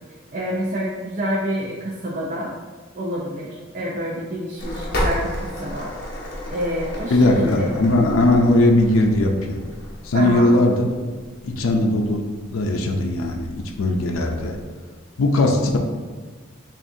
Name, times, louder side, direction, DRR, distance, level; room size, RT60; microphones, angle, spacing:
voice 1, 0.3-2.5 2.9-5.9 6.5-7.7 10.1-10.6, equal, 40° right, -4 dB, 0.5 m, -27 dB
sound 1, 4.6-14.6, equal, 50° left, 1.0 m, -33 dB
voice 2, 7.1-9.6 10.0-10.9 11.4-12.2 12.5-14.6 15.2-15.8, left 2 dB, 85° left, 2 dB, 0.5 m, -19 dB
7.1 x 2.4 x 2.6 m, 1.4 s
head